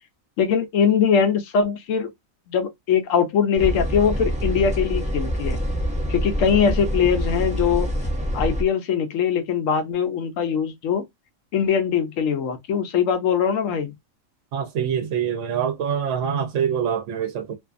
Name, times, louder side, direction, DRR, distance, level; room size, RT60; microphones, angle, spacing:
voice 1, 0.4-2.1 2.5-5.6 6.1-7.9 8.3-11.0 11.5-13.9, left 7 dB, 75° left, 0.9 m, -21 dB
sound 1, 3.6-8.6, equal, 10° right, 0.3 m, -25 dB
voice 2, 14.5-17.5, right 8 dB, 70° right, 0.8 m, -25 dB
2.5 x 2.4 x 2.4 m
omnidirectional pair, 1.4 m